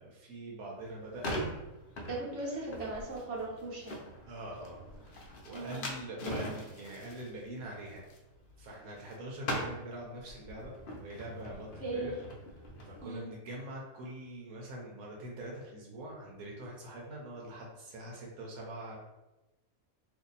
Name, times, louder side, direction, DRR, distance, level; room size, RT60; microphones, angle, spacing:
voice 1, 0.0-1.4 2.3-2.6 4.3-8.0 8.6-12.2 12.9-19.0, right 1 dB, 85° right, -3 dB, 1.2 m, -44 dB
sound 1, 0.8-9.1 9.4-13.0, equal, 60° left, 0.6 m, -42 dB
voice 2, 2.1-4.0 5.5-5.9 11.8-12.2 13.0-13.3, right 2 dB, 55° right, -5 dB, 1.2 m, -38 dB
2.7 x 2.6 x 3.9 m, 1.0 s
omnidirectional pair, 1.5 m